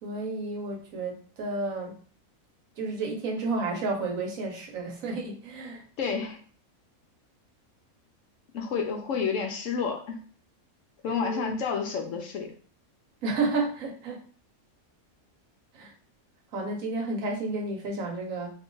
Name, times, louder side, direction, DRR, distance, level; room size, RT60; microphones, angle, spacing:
voice 1, 0.0-1.9 2.8-5.8 11.0-11.6 13.2-14.2 15.7-15.9 16.5-18.5, right 3 dB, 70° right, 0 dB, 1.2 m, -31 dB
voice 2, 6.0-6.4 8.5-10.2 11.0-12.5, left 6 dB, 70° left, 3 dB, 0.9 m, -30 dB
2.8 x 2.4 x 3.7 m, 0.42 s
omnidirectional pair, 1.5 m